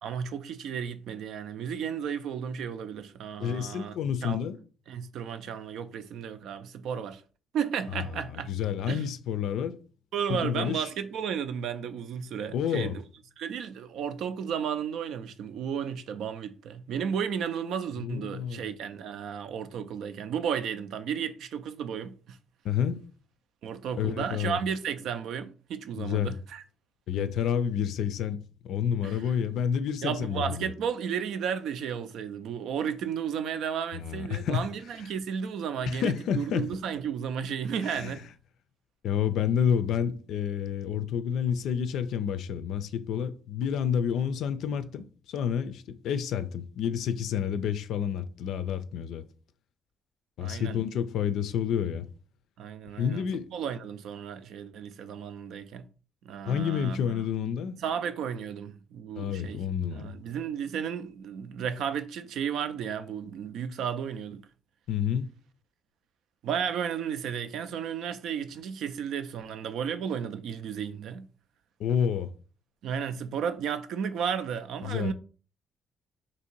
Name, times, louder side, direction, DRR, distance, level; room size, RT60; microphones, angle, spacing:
voice 1, 0.0-3.9 4.2-4.4 4.9-7.2 7.5-8.5 8.9-9.0 10.1-13.0 13.4-22.4 23.6-26.6 29.0-29.3 30.0-38.3 50.4-50.8 52.6-53.2 53.5-55.9 56.2-57.2 57.8-59.6 59.9-64.5 66.4-71.3 72.8-75.1, right 7 dB, 80° right, 0.4 m, -33 dB
voice 2, 3.4-4.6 8.2-9.8 10.3-10.9 12.5-12.9 18.0-18.6 22.6-23.0 24.0-24.6 26.0-26.3 27.1-30.7 33.9-34.7 35.9-36.7 37.9-38.2 39.0-49.2 50.4-52.1 53.0-53.5 56.5-57.8 59.2-60.1 64.9-65.3 71.8-72.3 74.8-75.1, left 8 dB, 80° left, 0.4 m, -29 dB
2.9 x 2.7 x 4.4 m
cardioid pair, 90°, 0 cm